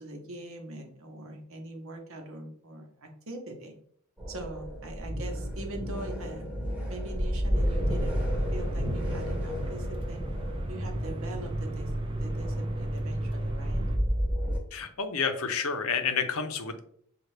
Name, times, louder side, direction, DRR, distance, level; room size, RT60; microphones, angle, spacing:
voice 1, 0.0-3.7 4.3-6.5 6.9-8.2 8.5-10.3 10.7-11.9 12.2-13.9, right 2 dB, 65° right, 3 dB, 0.9 m, -42 dB
sound 1, 4.2-14.6, equal, 5° right, 0.9 m, -32 dB
sound 2, 7.5-14.0, right 1 dB, 25° right, 0.5 m, -34 dB
voice 2, 14.7-16.8, left 5 dB, 70° left, 8 dB, 0.6 m, -29 dB
6.4 x 2.4 x 3.2 m, 0.64 s
head